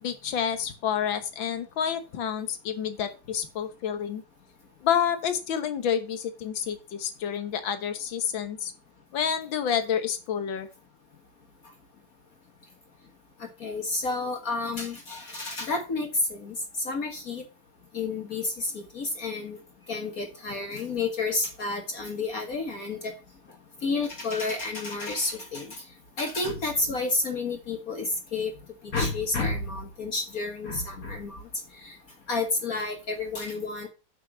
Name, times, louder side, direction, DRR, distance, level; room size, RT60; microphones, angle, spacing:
voice 1, 0.0-4.2 4.8-8.7 9.1-10.7, left 8 dB, 90° left, 9 dB, 1.9 m, -29 dB
voice 2, 13.4-16.6 16.9-17.4 17.9-19.6 19.9-23.1 23.8-25.8 26.2-28.5 28.9-31.4 31.8-32.0 32.3-33.9, left 3 dB, 50° left, 3 dB, 1.7 m, -30 dB
8.1 x 5.9 x 6.0 m, 0.31 s
omnidirectional pair, 2.1 m